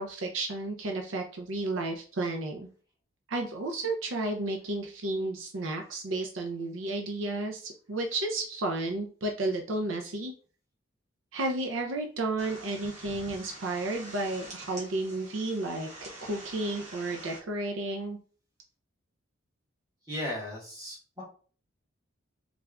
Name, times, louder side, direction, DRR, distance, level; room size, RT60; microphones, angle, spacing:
voice 1, 0.0-2.7 3.3-10.3 11.3-18.2, right 2 dB, 75° right, 3 dB, 0.6 m, -32 dB
sound 1, 12.4-17.4, right 2 dB, 40° right, 1.3 m, -46 dB
voice 2, 20.1-21.2, left 1 dB, 20° right, -5 dB, 1.5 m, -36 dB
3.3 x 2.5 x 3.5 m, 0.40 s
head